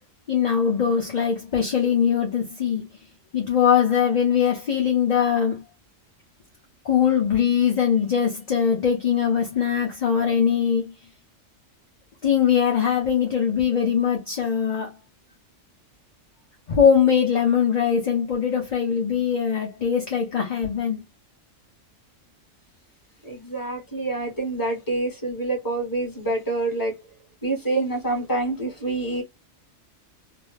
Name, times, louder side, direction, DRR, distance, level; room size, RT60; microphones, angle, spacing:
voice 1, 0.3-2.9 3.3-5.6 6.8-10.9 12.2-14.9 16.7-21.0, left 7 dB, 40° left, 0.7 m, -21 dB
voice 2, 23.2-26.9 27.4-29.2, right 2 dB, 15° left, 1.3 m, -26 dB
2.8 x 2.1 x 3.2 m
omnidirectional pair, 1.3 m